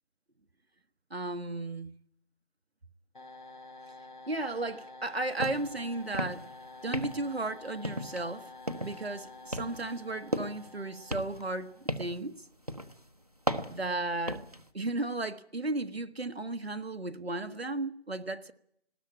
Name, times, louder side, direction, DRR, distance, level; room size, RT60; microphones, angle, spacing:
voice 1, 1.1-1.9 4.3-6.5 6.8-8.5 8.8-12.3 13.7-14.5 14.7-18.5, right 2 dB, 65° right, 1.2 m, -34 dB
sound 1, 3.1-12.1, left 2 dB, 45° left, 2.0 m, -49 dB
sound 2, 5.4-5.7 6.0-6.5 6.9-7.4 7.8-8.3 8.7-9.1 9.5-10.7 11.1-12.3 12.7-13.0 13.5-14.6, equal, 35° right, 0.9 m, -35 dB
19.5 x 17.5 x 8.7 m
figure-of-eight pair, 175°, 33 cm